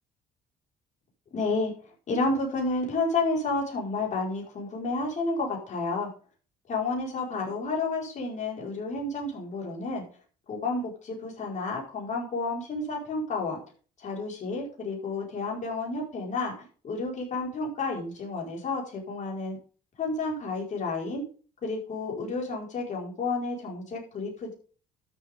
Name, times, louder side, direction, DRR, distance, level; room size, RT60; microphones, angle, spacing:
voice 1, 1.3-1.7 2.1-6.1 6.7-10.0 10.5-13.6 14.0-19.6 20.0-21.2 21.6-24.5, left 3 dB, 45° left, -1 dB, 5.1 m, -31 dB
12.5 x 7.4 x 3.8 m, 0.39 s
cardioid pair, 110°, 17 cm